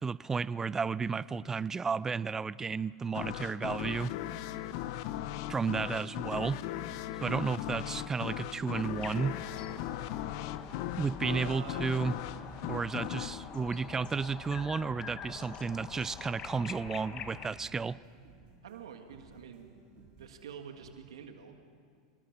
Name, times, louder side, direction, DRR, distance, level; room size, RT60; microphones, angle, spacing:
voice 1, 0.0-4.1 5.5-6.6 7.2-9.4 11.0-12.2 12.6-18.0, right 5 dB, 15° right, 20 dB, 0.4 m, -33 dB
sound 1, 3.1-14.6, left 12 dB, 60° left, 0.9 m, -38 dB
sound 2, 6.9-21.0, right 5 dB, 50° right, 4.3 m, -59 dB
sound 3, 9.0-17.5, left 7 dB, 35° left, 1.7 m, -46 dB
voice 2, 11.2-11.9 18.6-19.8 20.2-21.6, right 7 dB, 80° right, 6 dB, 1.7 m, -46 dB
26.5 x 20.0 x 6.0 m, 2.2 s
hypercardioid pair, 105°, 3 cm